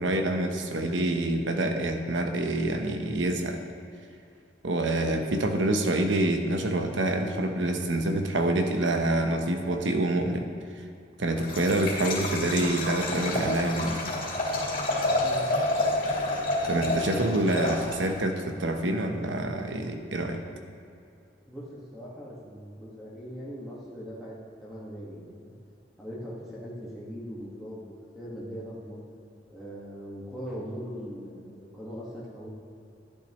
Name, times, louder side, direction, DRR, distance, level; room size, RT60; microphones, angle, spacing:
voice 1, 0.0-3.6 4.6-10.5 11.2-14.0 16.7-20.4, right 1 dB, 90° right, 5 dB, 0.9 m, -27 dB
Liquid, 11.4-18.2, left 1 dB, 50° left, 2.5 m, -29 dB
voice 2, 15.1-15.5 21.4-24.3 24.6-25.5 26.0-29.0 29.5-32.5, equal, ahead, -8 dB, 1.6 m, -40 dB
11.5 x 10.0 x 3.1 m, 2.5 s
head